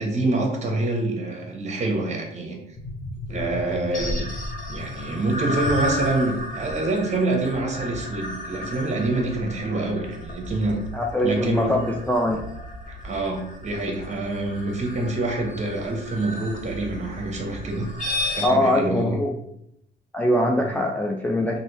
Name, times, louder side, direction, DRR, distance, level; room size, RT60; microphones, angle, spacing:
voice 1, 0.0-2.6 3.3-4.2 4.7-10.8 11.2-11.7 12.9-17.9 18.4-19.2 20.6-20.7, right 2 dB, 35° right, 1 dB, 0.9 m, -26 dB
sound 1, 2.8-18.5, left 1 dB, 40° left, 1.0 m, -33 dB
voice 2, 10.9-12.5 18.4-19.3 20.1-21.6, left 1 dB, 10° left, -1 dB, 0.3 m, -22 dB
3.2 x 2.6 x 2.9 m, 0.76 s
cardioid pair, 90°, 20 cm